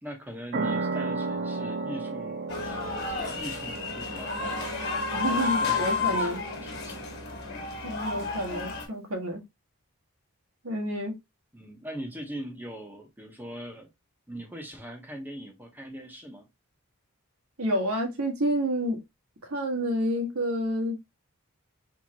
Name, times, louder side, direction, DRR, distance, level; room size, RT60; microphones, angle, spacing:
voice 1, 0.0-4.7 5.1-6.3 6.6-7.1 11.5-13.9 14.3-16.5, right 1 dB, 10° right, 0.9 m, -41 dB
sound 1, 0.5-7.7, right 3 dB, 40° right, 0.4 m, -35 dB
sound 2, 2.5-8.8, left 3 dB, 45° left, 1.5 m, -31 dB
voice 2, 5.1-6.4 7.8-9.4 10.6-11.2 17.6-19.0 19.4-21.0, equal, 75° right, 1.6 m, -29 dB
4.6 x 3.5 x 2.7 m
head